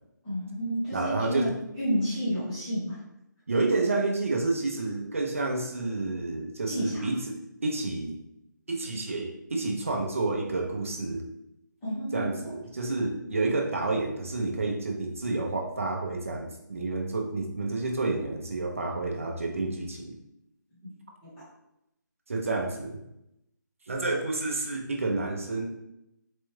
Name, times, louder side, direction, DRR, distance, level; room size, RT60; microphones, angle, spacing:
voice 1, 0.2-1.5 1.8-3.0 6.7-7.1 11.8-12.5 21.2-21.4, equal, 5° left, -12 dB, 0.7 m, -30 dB
voice 2, 0.9-1.5 3.5-7.4 7.6-8.1 8.7-11.2 12.1-20.1 22.3-23.0 23.9-25.7, right 3 dB, 40° right, 1 dB, 0.6 m, -29 dB
4.1 x 2.3 x 3.1 m, 0.83 s
hypercardioid pair, 180°, 11 cm